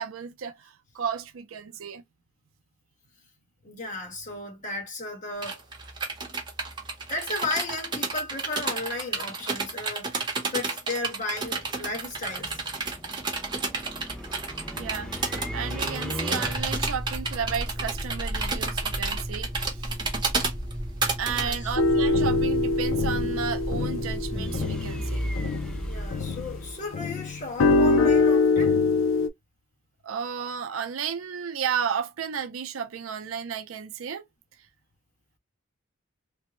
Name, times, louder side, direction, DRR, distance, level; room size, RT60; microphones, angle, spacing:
voice 1, 0.0-2.0 14.8-15.1 15.5-19.8 21.2-25.3 30.0-34.2, right 7 dB, 85° right, 0.5 m, -33 dB
voice 2, 3.6-5.6 7.1-12.6 21.3-21.7 25.9-28.7, left 2 dB, 40° left, 1.4 m, -34 dB
sound 1, 5.4-21.6, right 4 dB, 20° right, 0.9 m, -31 dB
sound 2, 11.4-27.4, equal, 5° left, 0.4 m, -34 dB
sound 3, 21.8-26.6 26.9-29.3, left 3 dB, 75° left, 0.5 m, -24 dB
3.4 x 2.1 x 2.9 m
head